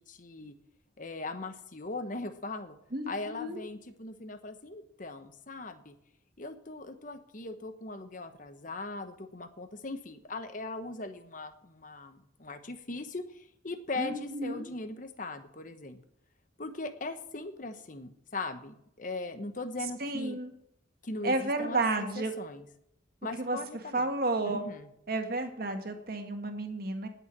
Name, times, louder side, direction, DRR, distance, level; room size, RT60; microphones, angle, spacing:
voice 1, 0.1-0.5 1.0-2.8 3.1-5.9 6.4-16.0 16.6-20.4 21.0-22.6 23.2-24.1 24.4-24.9, left 2 dB, 45° left, 9 dB, 1.1 m, -39 dB
voice 2, 2.9-3.6 14.0-14.7 20.0-20.5 21.2-22.3 23.4-23.6 23.9-24.7 25.1-27.1, right 2 dB, 50° right, 5 dB, 1.8 m, -32 dB
19.0 x 7.1 x 6.0 m, 0.75 s
head